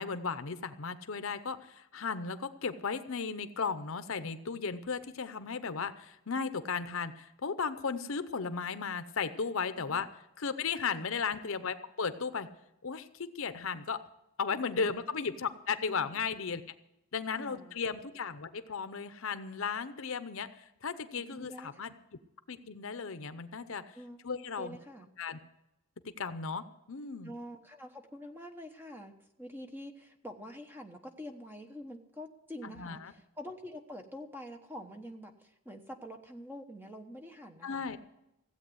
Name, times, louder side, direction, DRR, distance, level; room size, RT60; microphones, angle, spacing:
voice 1, 0.0-10.1 10.4-12.5 12.8-14.0 14.4-16.6 17.1-20.5 20.8-21.9 22.5-23.8 24.2-24.8 25.2-25.4 26.2-27.3 32.6-33.1 37.6-38.0, left 5 dB, 65° left, 11 dB, 0.7 m, -35 dB
voice 2, 9.7-10.1 10.9-11.1 14.7-15.0 15.9-16.1 17.3-17.8 21.2-21.9 23.9-24.2 24.6-25.1 27.2-37.8, equal, 10° right, 4 dB, 1.0 m, -46 dB
16.0 x 8.2 x 7.9 m, 0.88 s
head